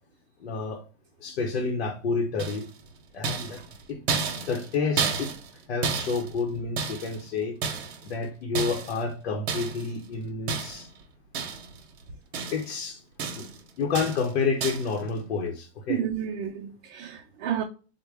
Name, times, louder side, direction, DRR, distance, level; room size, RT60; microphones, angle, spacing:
voice 1, 0.4-0.8 1.2-2.7 3.1-3.6 3.9-4.0 4.5-5.3 5.7-7.6 8.0-10.9 12.5-13.0 13.3-13.5 13.8-16.0, left 4 dB, 85° left, 0.9 m, -29 dB
sound 1, 2.4-2.8 3.2-5.6 5.8-7.2 7.6-8.1 8.5-9.0 9.5-9.9 10.5-11.0 11.3-11.8 12.1-12.8 13.2-13.6 13.9-14.3 14.6-15.0, right 5 dB, 75° right, 0.9 m, -31 dB
voice 2, 15.9-17.6, right 9 dB, 50° right, 0.6 m, -31 dB
3.8 x 2.1 x 3.3 m
supercardioid pair, 145°, 32 cm